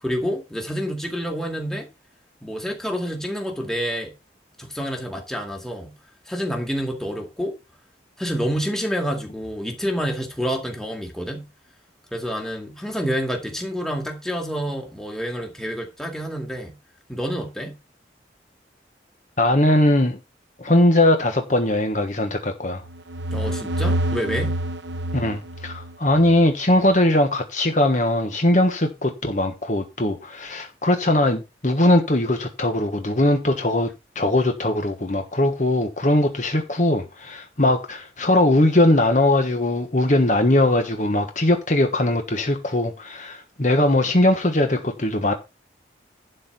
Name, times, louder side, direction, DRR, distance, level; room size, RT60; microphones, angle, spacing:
voice 1, 0.0-1.9 2.4-4.1 4.6-5.9 6.3-7.5 8.2-11.5 12.1-16.8 17.1-17.8 23.3-24.6, equal, 5° left, 2.1 m, -28 dB
voice 2, 19.4-20.2 20.6-22.8 25.1-33.9 34.1-45.3, left 1 dB, 40° left, 1.3 m, -20 dB
sound 1, 22.8-26.5, right 1 dB, 80° right, 1.0 m, -27 dB
11.5 x 4.4 x 6.9 m
head